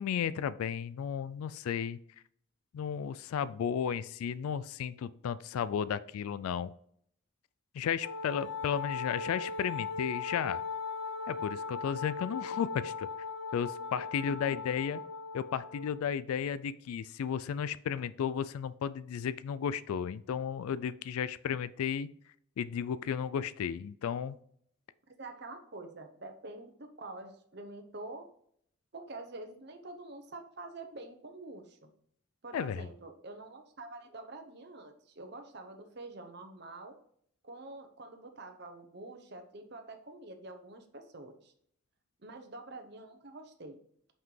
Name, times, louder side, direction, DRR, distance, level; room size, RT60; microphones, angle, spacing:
voice 1, 0.0-2.0 2.7-6.7 7.7-10.6 11.3-13.1 13.5-15.0 15.3-22.1 22.6-24.4 32.5-32.9, left 8 dB, 90° left, 16 dB, 0.3 m, -34 dB
Wind instrument woodwind instrument, 8.0-16.0, left 5 dB, 55° left, 1.5 m, -39 dB
voice 2, 25.2-28.3 28.9-31.9 32.4-37.0 37.4-41.5 42.2-43.8, right 2 dB, 50° right, 6 dB, 0.8 m, -46 dB
5.8 x 5.4 x 3.2 m, 0.65 s
head